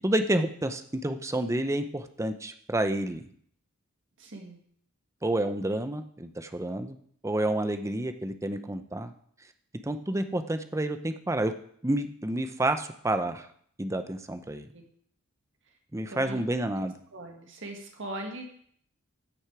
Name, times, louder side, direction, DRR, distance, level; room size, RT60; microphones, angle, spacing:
voice 1, 0.0-3.3 5.2-7.0 7.2-9.1 9.8-11.5 11.8-13.5 13.8-14.7 15.9-16.9, right 1 dB, 15° right, 9 dB, 0.6 m, -29 dB
voice 2, 4.2-4.6 14.7-14.8 16.1-16.4 17.1-18.6, right 1 dB, 60° right, 2 dB, 1.7 m, -40 dB
14.5 x 6.2 x 4.8 m, 0.63 s
head